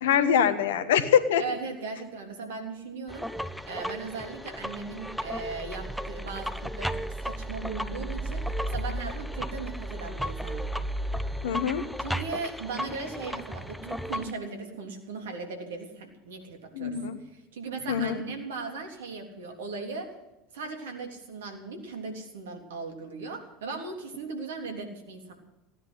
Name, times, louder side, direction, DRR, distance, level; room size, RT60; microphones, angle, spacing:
voice 1, 0.0-1.4 11.4-11.8 16.8-17.2 17.9-18.2, left 8 dB, 70° left, 11 dB, 1.4 m, -23 dB
voice 2, 1.4-3.3 3.7-10.6 12.0-17.0 17.2-20.1 20.5-25.3, right 4 dB, 70° right, 4 dB, 3.2 m, -38 dB
sound 1, 3.1-14.3, equal, ahead, 0.8 m, -34 dB
16.5 x 10.5 x 8.1 m, 1.0 s
figure-of-eight pair, 75°, 0 cm